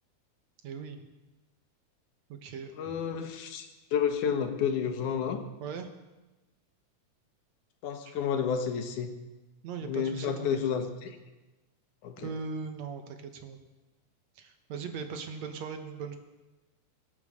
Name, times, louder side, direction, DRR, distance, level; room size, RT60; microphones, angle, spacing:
voice 1, 0.6-1.0 2.3-2.7 5.6-5.9 8.1-8.2 9.6-10.6 12.2-13.6 14.4-16.2, right 5 dB, 65° right, 7 dB, 2.3 m, -39 dB
voice 2, 2.7-5.4 7.8-9.1 9.8-11.2 12.0-12.3, left 7 dB, 75° left, 7 dB, 2.8 m, -31 dB
24.0 x 9.1 x 6.4 m, 1.1 s
omnidirectional pair, 3.5 m